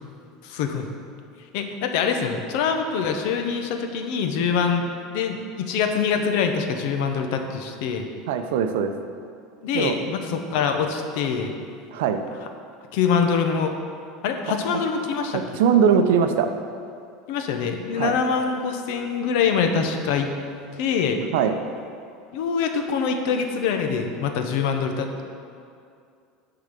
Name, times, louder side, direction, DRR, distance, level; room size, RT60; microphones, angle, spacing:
voice 1, 0.4-0.9 1.5-4.8 5.1-8.1 9.6-11.5 12.9-13.7 14.2-15.4 17.3-20.3 20.8-21.2 22.3-25.2, left 6 dB, 55° left, 5 dB, 0.8 m, -24 dB
voice 2, 8.3-8.9 9.7-10.0 11.9-12.2 15.3-16.5 18.0-18.2 21.3-21.6, right 7 dB, 75° right, 7 dB, 0.6 m, -21 dB
10.0 x 3.9 x 6.7 m, 2.4 s
cardioid pair, 180°, 0 cm